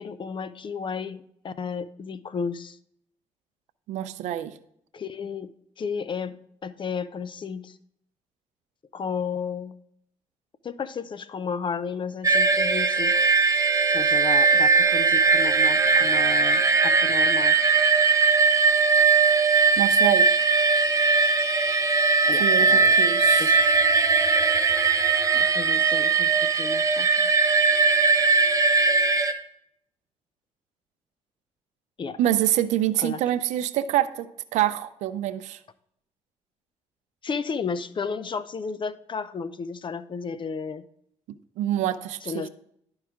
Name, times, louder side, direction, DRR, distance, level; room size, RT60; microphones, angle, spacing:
voice 1, 0.0-2.8 4.9-5.5 5.8-7.8 8.9-9.8 10.6-13.2 13.9-17.6 22.3-23.0 23.4-23.6 25.3-27.3 32.0-32.2 33.0-33.2 37.2-40.8 42.2-42.5, left 5 dB, 45° left, 14 dB, 0.6 m, -33 dB
voice 2, 3.9-4.5 19.8-20.3 22.4-23.6 32.2-34.3 34.5-35.6 41.6-42.3, right 12 dB, 85° right, 12 dB, 0.5 m, -26 dB
sound 1, 12.2-29.3, right 4 dB, 25° right, 0.8 m, -20 dB
11.5 x 4.8 x 3.6 m, 0.72 s
supercardioid pair, 70°, 12 cm